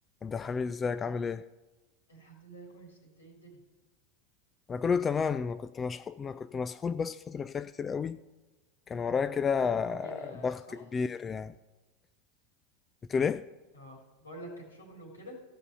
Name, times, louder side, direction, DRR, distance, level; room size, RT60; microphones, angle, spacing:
voice 1, 0.2-1.5 4.7-8.2 8.9-11.5 13.1-13.5, left 6 dB, 25° left, 0.4 m, -31 dB
voice 2, 2.1-3.6 9.6-10.8 13.7-15.4, right 1 dB, 85° left, 3.4 m, -48 dB
14.0 x 5.4 x 7.0 m
figure-of-eight pair, 85°, 0 cm